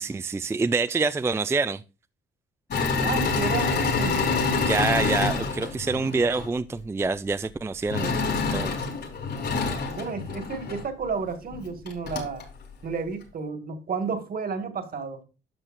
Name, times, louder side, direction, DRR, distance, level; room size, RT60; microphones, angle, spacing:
voice 1, 0.0-1.8 4.6-8.7, right 4 dB, 15° right, 0.3 m, -26 dB
Engine / Mechanisms, 2.7-6.5 7.9-10.8 11.5-11.6 11.9-12.4, left 4 dB, 60° left, 4.7 m, -27 dB
voice 2, 3.0-4.4 10.0-12.4 12.8-15.2, right 5 dB, 50° right, 1.8 m, -32 dB
12.0 x 6.4 x 2.6 m
cardioid pair, 90°, 20 cm